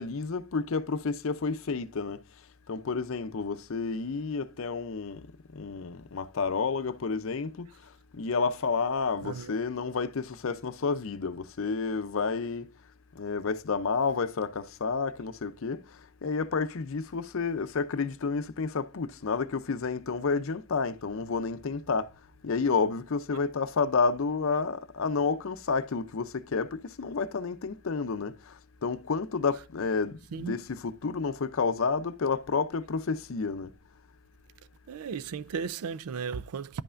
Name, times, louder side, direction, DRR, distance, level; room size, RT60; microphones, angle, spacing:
voice 1, 0.0-2.2 2.7-5.3 5.5-7.7 8.1-12.7 13.2-22.1 22.4-33.7, left 4 dB, 65° left, 0.5 m, -30 dB
voice 2, 9.2-9.5 30.3-30.6 34.9-36.8, right 6 dB, 90° right, 0.4 m, -35 dB
10.5 x 5.6 x 2.5 m
head